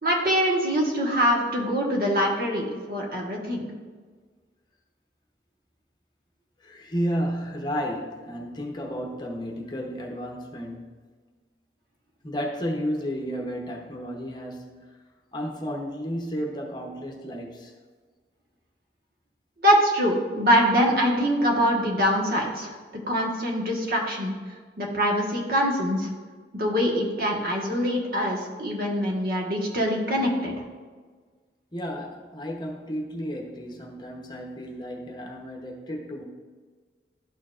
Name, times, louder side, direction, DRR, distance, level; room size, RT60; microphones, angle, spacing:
voice 1, 0.0-3.7 19.6-22.7 23.1-24.3 24.8-26.1 26.5-30.5, equal, 55° right, -1 dB, 1.3 m, -24 dB
voice 2, 6.6-10.9 12.2-14.9 15.3-17.7 31.7-36.2, equal, 25° left, 0 dB, 0.8 m, -32 dB
12.0 x 4.5 x 2.4 m, 1.5 s
head